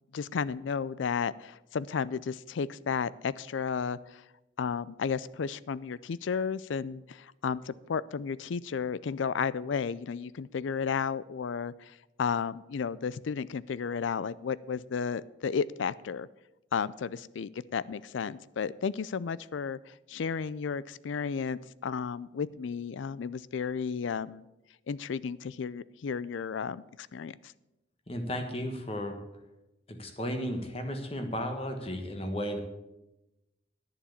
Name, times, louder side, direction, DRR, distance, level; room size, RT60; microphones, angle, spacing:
voice 1, 0.1-4.2 4.6-16.3 16.7-24.4 24.9-27.4, left 6 dB, 80° left, 19 dB, 0.4 m, -33 dB
voice 2, 28.1-29.2 29.9-32.6, equal, 30° left, 6 dB, 1.4 m, -34 dB
11.0 x 7.1 x 7.3 m, 0.97 s
head